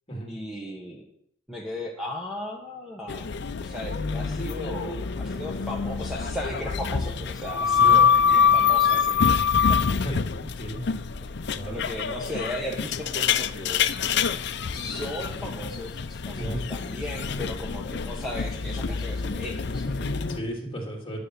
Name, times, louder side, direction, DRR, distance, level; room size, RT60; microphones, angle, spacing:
voice 1, 0.3-1.0 1.5-3.3 3.6-10.0 11.7-13.9 14.7-20.1, left 1 dB, ahead, -2 dB, 1.3 m, -36 dB
sound 1, 3.1-20.4, left 6 dB, 60° left, 0.5 m, -25 dB
voice 2, 10.4-10.8 11.5-11.8 16.4-16.6 20.3-21.2, right 1 dB, 25° left, -2 dB, 2.6 m, -35 dB
10.5 x 6.7 x 6.8 m, 0.69 s
head